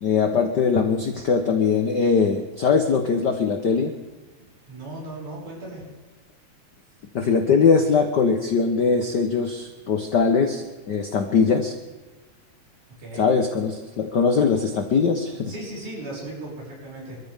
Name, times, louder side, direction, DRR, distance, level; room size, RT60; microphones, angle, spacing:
voice 1, 0.0-3.9 7.1-11.7 13.1-15.5, left 5 dB, 80° left, 5 dB, 0.9 m, -21 dB
voice 2, 4.7-5.8 13.0-13.3 15.5-17.2, right 1 dB, 80° right, -4 dB, 8.0 m, -36 dB
28.0 x 14.0 x 3.6 m, 1.2 s
omnidirectional pair, 3.4 m